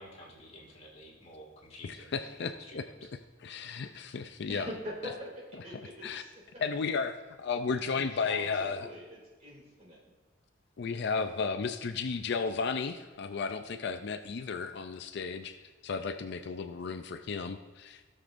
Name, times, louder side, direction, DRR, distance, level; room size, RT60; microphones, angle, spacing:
voice 1, 0.0-3.1, left 1 dB, 35° left, -3 dB, 2.2 m, -51 dB
voice 2, 1.8-2.8 3.4-4.7 5.6-6.2 6.6-8.9 10.8-15.6 15.8-18.1, left 5 dB, 60° left, 8 dB, 0.4 m, -34 dB
voice 3, 4.5-5.3 5.6-6.3 7.9-10.0, equal, 35° right, -4 dB, 2.8 m, -43 dB
16.5 x 6.6 x 2.6 m, 1.2 s
head